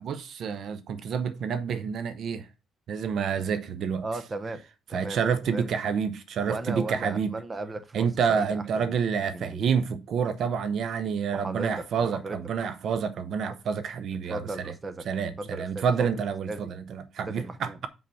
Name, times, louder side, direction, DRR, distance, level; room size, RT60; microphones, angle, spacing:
voice 1, 0.0-2.5 2.9-4.0 4.9-7.3 7.9-14.7 15.1-17.9, right 6 dB, 60° right, 0.6 m, -28 dB
voice 2, 4.0-5.7 6.4-9.0 9.3-9.6 11.3-12.4 14.3-15.1 15.4-16.1 16.5-16.7 17.3-17.8, right 2 dB, 25° right, 0.8 m, -36 dB
5.7 x 5.3 x 5.5 m
cardioid pair, 130°, 0 cm